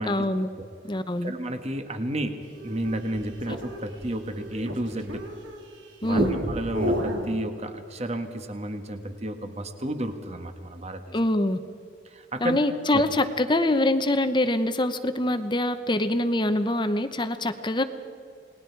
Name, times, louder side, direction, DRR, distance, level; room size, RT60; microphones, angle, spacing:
voice 1, 0.1-0.5 0.8-1.3 6.0-6.3 11.1-11.6 12.4-17.8, left 1 dB, 25° left, 10 dB, 0.9 m, -24 dB
voice 2, 1.2-2.4 2.6-5.2 6.0-11.1 12.0-12.6 12.9-13.0, right 1 dB, 35° right, 7 dB, 1.5 m, -32 dB
sound 1, 2.5-5.6 6.0-7.3, equal, 70° right, 3.1 m, -30 dB
29.0 x 20.0 x 4.7 m, 2.3 s
head